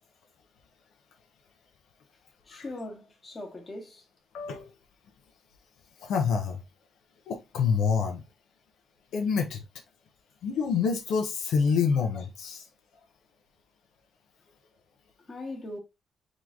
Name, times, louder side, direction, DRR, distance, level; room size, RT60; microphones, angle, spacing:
voice 1, 2.5-4.0 15.3-15.8, left 2 dB, 25° left, 1.4 m, -40 dB
voice 2, 4.3-4.7 6.0-6.6 7.3-8.2 9.1-9.6 10.4-12.6, left 6 dB, 90° left, 1.0 m, -27 dB
3.9 x 3.2 x 3.8 m
cardioid pair, 140°, 0 cm